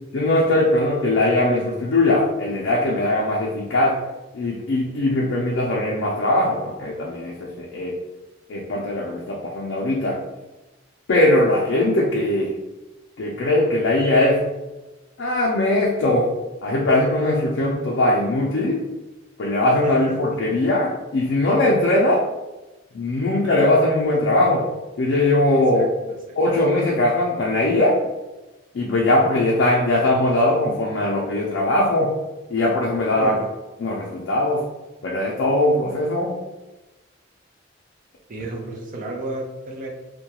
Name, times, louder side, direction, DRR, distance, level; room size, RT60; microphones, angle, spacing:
voice 1, 0.1-4.0 4.3-8.0 8.5-10.2 11.1-12.5 13.2-14.4 15.2-16.3 16.6-18.8 19.4-22.2 22.9-24.7 25.0-25.9 26.4-28.0 28.7-32.1 32.5-33.3 33.8-34.7 35.0-36.4, left 1 dB, 65° left, -3 dB, 0.4 m, -20 dB
voice 2, 25.5-25.9 26.3-26.4 33.2-33.5 38.3-39.9, right 2 dB, 45° right, -1 dB, 0.5 m, -32 dB
2.3 x 2.2 x 2.8 m, 1.1 s
head